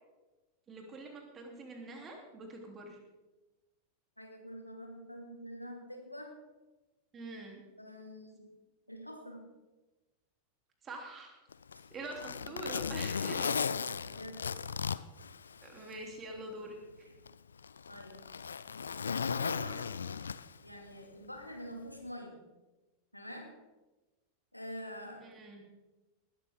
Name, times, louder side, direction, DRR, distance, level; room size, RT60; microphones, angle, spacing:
voice 1, 0.7-3.0 7.1-7.6 10.8-11.4 11.9-13.6 15.6-17.1 25.2-25.6, right 2 dB, 25° right, 1 dB, 3.4 m, -45 dB
voice 2, 4.2-6.4 7.8-8.5 8.9-9.5 12.4-12.5 13.8-14.7 17.1-17.2 17.9-18.3 19.3-19.9 20.6-22.4 23.1-23.6 24.5-25.3, equal, 90° left, 2 dB, 2.3 m, -46 dB
Zipper (clothing), 11.5-16.0 16.4-16.5 17.3-20.7 21.9-22.1, left 6 dB, 70° left, 0.4 m, -36 dB
19.0 x 13.0 x 3.8 m, 1.1 s
figure-of-eight pair, 90°, 0 cm